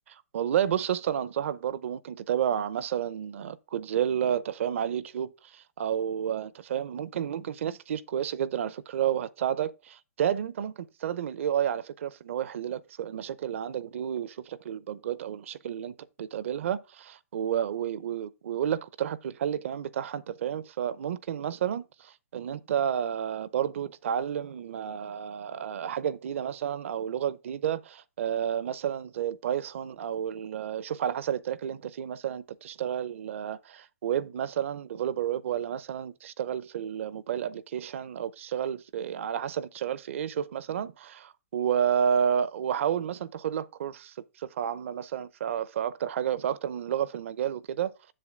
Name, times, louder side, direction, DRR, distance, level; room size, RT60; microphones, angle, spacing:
voice 1, 0.1-47.9, right 9 dB, 60° right, 0.7 m, -31 dB
7.7 x 7.1 x 3.6 m
hypercardioid pair, 160°, 8 cm